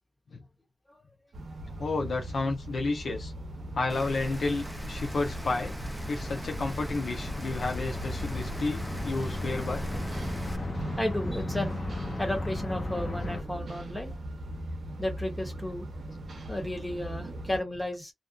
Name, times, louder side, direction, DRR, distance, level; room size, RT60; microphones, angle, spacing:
sound 1, 1.3-17.6, right 1 dB, 70° right, 0.7 m, -39 dB
voice 1, 1.8-3.3 3.7-5.7 6.1-10.0, left 3 dB, 75° left, 0.6 m, -31 dB
sound 2, 3.6-13.4, left 2 dB, 40° left, 0.8 m, -37 dB
Rain, 3.9-10.6, equal, 10° right, 0.5 m, -40 dB
voice 2, 11.0-11.8 12.2-14.1 15.0-15.9 16.5-18.1, left 1 dB, 10° left, 1.1 m, -33 dB
2.5 x 2.2 x 2.4 m
wide cardioid pair, 130°, 0 cm